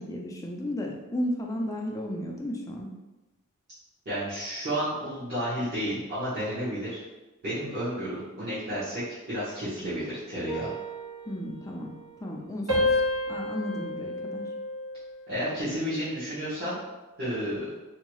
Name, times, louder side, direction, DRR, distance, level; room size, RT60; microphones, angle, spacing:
voice 1, 0.0-2.9 11.3-11.9 12.2-12.9 13.3-14.4, left 1 dB, 15° left, 0 dB, 0.3 m, -33 dB
voice 2, 4.0-7.0 7.4-10.7 15.3-16.8 17.2-17.7, equal, 50° right, -14 dB, 1.0 m, -31 dB
sound 1, 10.5-12.4 12.7-15.2 15.7-16.1, left 1 dB, 80° right, 1.3 m, -31 dB
2.7 x 2.3 x 2.9 m, 1.1 s
head